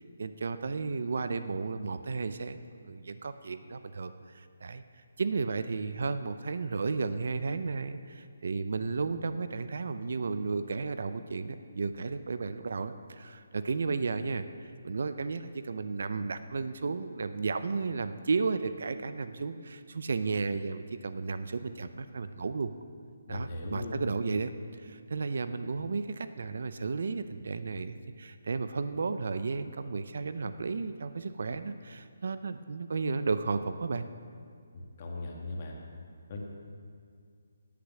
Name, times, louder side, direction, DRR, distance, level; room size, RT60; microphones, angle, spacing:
voice 1, 0.0-4.8 5.2-22.7 23.3-24.5 24.8-34.1, right 4 dB, 60° right, 11 dB, 0.5 m, -33 dB
voice 2, 23.3-24.0 34.7-35.7 36.3-36.4, left 2 dB, 30° left, -1 dB, 1.7 m, -38 dB
12.0 x 8.5 x 6.0 m, 2.2 s
hypercardioid pair, 170°, 0 cm